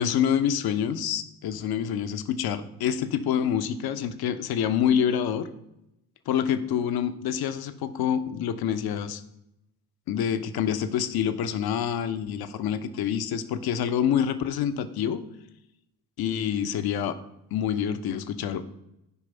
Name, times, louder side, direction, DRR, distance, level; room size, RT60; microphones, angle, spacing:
voice 1, 0.0-5.5 6.3-9.2 10.1-15.2 16.2-17.2 17.5-18.7, left 8 dB, 50° left, 11 dB, 0.9 m, -27 dB
12.5 x 5.1 x 5.4 m, 0.85 s
figure-of-eight pair, 55°, 49 cm